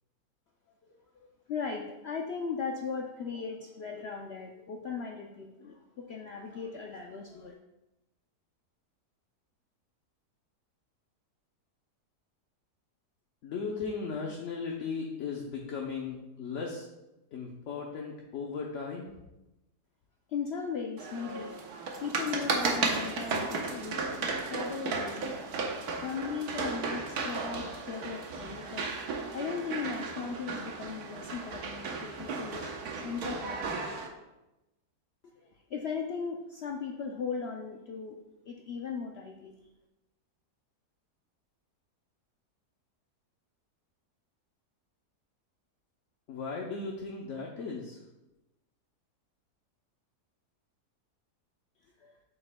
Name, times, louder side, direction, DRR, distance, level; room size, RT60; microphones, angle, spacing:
voice 1, 1.5-7.5 20.3-21.5 22.0-25.5 26.0-28.9 29.3-34.1 35.4-39.5 52.0-52.2, left 5 dB, 75° left, 2 dB, 0.6 m, -38 dB
voice 2, 13.4-16.9 17.3-19.1 46.3-48.0, left 5 dB, 60° left, 0 dB, 0.9 m, -37 dB
sound 1, 21.0-34.1, right 4 dB, 70° right, 1.4 m, -35 dB
7.8 x 7.6 x 2.2 m, 0.98 s
omnidirectional pair, 1.7 m